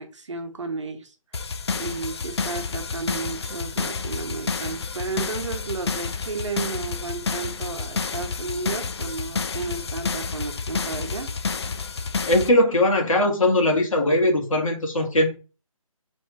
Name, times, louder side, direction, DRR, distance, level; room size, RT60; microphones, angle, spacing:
voice 1, 0.0-1.5 1.7-11.3, right 4 dB, 55° right, 1.1 m, -33 dB
sound 1, 1.3-12.5, left 5 dB, 50° left, 0.4 m, -30 dB
voice 2, 12.3-15.3, left 1 dB, 65° left, 1.5 m, -20 dB
3.4 x 3.1 x 4.5 m
figure-of-eight pair, 165°, 18 cm